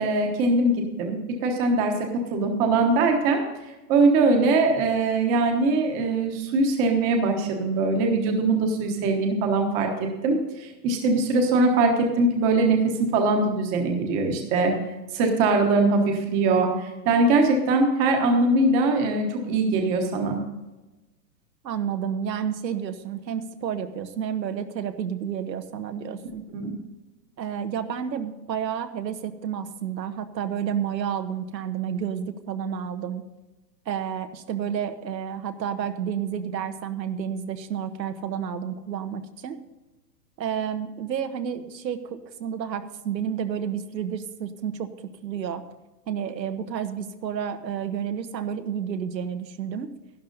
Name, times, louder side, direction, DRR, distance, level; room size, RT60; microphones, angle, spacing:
voice 1, 0.0-3.4 3.9-9.9 10.2-14.7 15.1-20.4 26.5-26.7, right 3 dB, 15° right, 3 dB, 1.1 m, -22 dB
voice 2, 21.6-26.4 27.4-33.2 33.9-39.6 40.4-44.9 45.2-45.6 46.1-49.9, right 8 dB, 90° right, 8 dB, 1.3 m, -30 dB
12.0 x 11.0 x 4.0 m, 1.1 s
hypercardioid pair, 170°, 49 cm